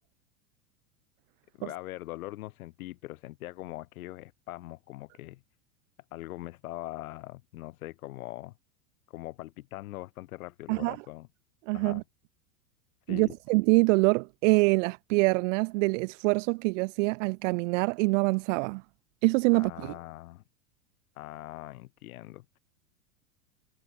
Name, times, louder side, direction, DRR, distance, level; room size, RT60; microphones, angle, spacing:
voice 1, 1.6-5.4 6.1-8.5 9.1-11.3 11.7-12.0 13.1-13.3 19.5-20.4 21.2-22.6, left 17 dB, 70° left, 5.5 m, -42 dB
voice 2, 11.7-12.0 13.1-18.8 19.2-19.9, right 28 dB, 60° right, 0.7 m, -25 dB
hypercardioid pair, 110°, 43 cm